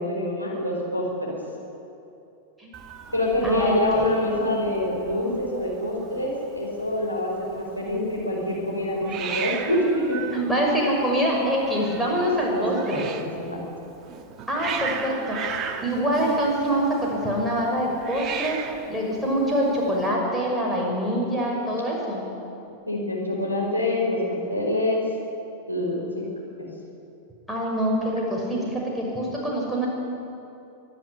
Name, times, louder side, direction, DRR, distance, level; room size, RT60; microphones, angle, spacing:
voice 1, 0.0-1.4 3.1-10.2 12.5-13.6 22.9-25.0 25.7-26.3 26.6-26.7, left 1 dB, 90° left, -3 dB, 5.3 m, -26 dB
Hiss, 2.7-20.1, right 6 dB, 30° right, 1.6 m, -37 dB
voice 2, 3.4-4.2 10.3-13.1 14.5-15.4 15.8-18.6 18.9-22.2 27.5-29.9, equal, ahead, -3 dB, 6.1 m, -25 dB
24.0 x 12.0 x 9.7 m, 2.8 s
figure-of-eight pair, 90°, 0 cm